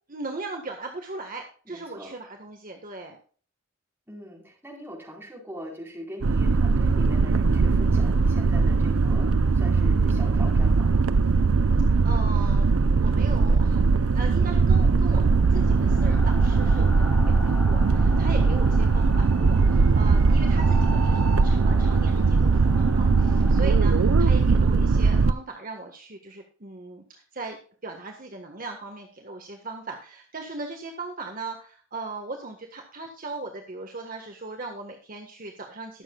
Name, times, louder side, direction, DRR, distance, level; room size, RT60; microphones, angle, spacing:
voice 1, 0.1-3.2 12.0-36.0, right 3 dB, 45° right, 2 dB, 1.6 m, -38 dB
voice 2, 1.7-2.1 4.1-10.9, equal, 10° right, -2 dB, 4.4 m, -41 dB
sound 1, 6.2-25.3, right 4 dB, 90° right, 0.6 m, -20 dB
sound 2, 14.4-24.4, left 1 dB, 10° left, 2.9 m, -42 dB
21.5 x 7.4 x 2.4 m, 0.41 s
head